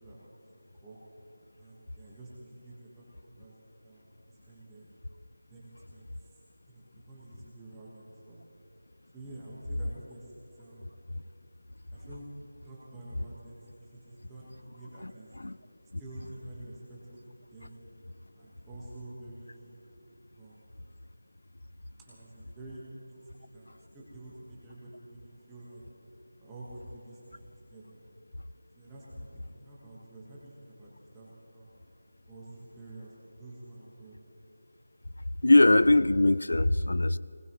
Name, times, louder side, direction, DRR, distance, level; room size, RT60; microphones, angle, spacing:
voice 1, 0.0-1.0 1.6-3.5 3.8-4.8 5.5-6.4 6.7-8.4 9.1-11.0 11.9-12.3 12.6-13.5 13.8-15.3 16.0-17.2 17.5-17.7 18.3-19.7 20.4-20.6 22.0-22.8 23.1-25.8 26.4-28.0 28.7-31.7 32.3-34.1, right 2 dB, 5° right, -9 dB, 1.4 m, -49 dB
voice 2, 35.4-37.2, left 2 dB, 85° left, 17 dB, 0.4 m, -21 dB
21.5 x 19.5 x 3.1 m, 2.8 s
figure-of-eight pair, 175°, 0 cm